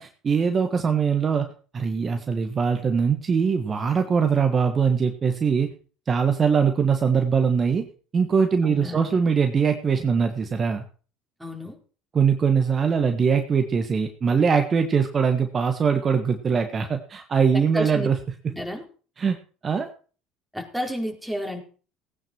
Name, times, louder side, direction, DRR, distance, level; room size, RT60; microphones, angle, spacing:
voice 1, 0.0-1.5 1.7-5.7 6.1-7.8 8.1-10.8 12.1-18.2 19.2-19.4 19.6-19.9, right 6 dB, 35° right, 6 dB, 1.6 m, -22 dB
voice 2, 8.6-9.2 11.4-11.8 17.5-18.1 18.5-18.8 20.5-21.6, equal, ahead, 1 dB, 4.2 m, -31 dB
17.5 x 9.4 x 4.6 m, 0.39 s
hypercardioid pair, 70°, 0 cm